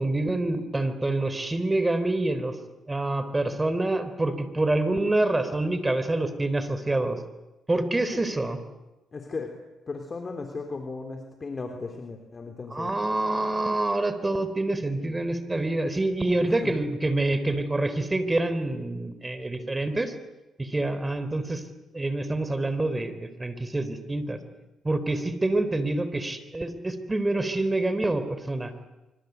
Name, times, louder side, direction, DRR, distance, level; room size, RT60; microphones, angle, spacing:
voice 1, 0.0-2.6 2.9-7.2 7.7-8.6 12.7-20.1 20.6-21.6 21.9-24.4 24.8-28.7, right 2 dB, 15° right, 11 dB, 3.8 m, -26 dB
voice 2, 9.1-9.5 9.9-12.9 16.4-16.8, left 4 dB, 35° left, 4 dB, 3.5 m, -36 dB
25.5 x 25.0 x 8.2 m, 1.0 s
cardioid pair, 90°, 0 cm